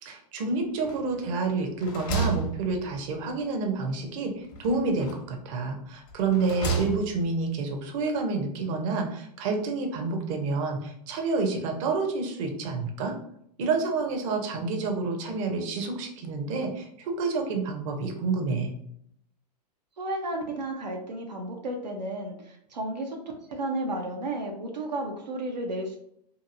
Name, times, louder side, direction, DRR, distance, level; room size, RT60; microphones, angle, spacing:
voice 1, 0.0-13.1 13.6-18.7, right 3 dB, 50° right, 3 dB, 0.7 m, -29 dB
sound 1, 0.8-1.3 1.6-3.3 4.5-5.4 6.1-7.3, right 3 dB, 40° left, 0.9 m, -32 dB
voice 2, 20.0-26.0, right 1 dB, 85° right, 1 dB, 0.6 m, -33 dB
2.8 x 2.5 x 2.5 m, 0.71 s
hypercardioid pair, 105°, 21 cm